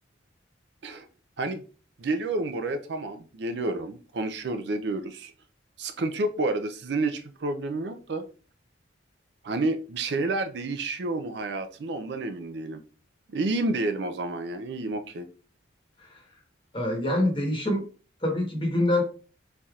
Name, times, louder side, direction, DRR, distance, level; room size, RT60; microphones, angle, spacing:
voice 1, 2.0-5.3 5.8-8.2 9.4-12.8 13.3-15.3, right 2 dB, 60° right, 8 dB, 0.4 m, -30 dB
voice 2, 16.7-17.8 18.2-19.0, left 1 dB, 25° left, 1 dB, 1.0 m, -25 dB
4.1 x 3.3 x 2.4 m, 0.37 s
head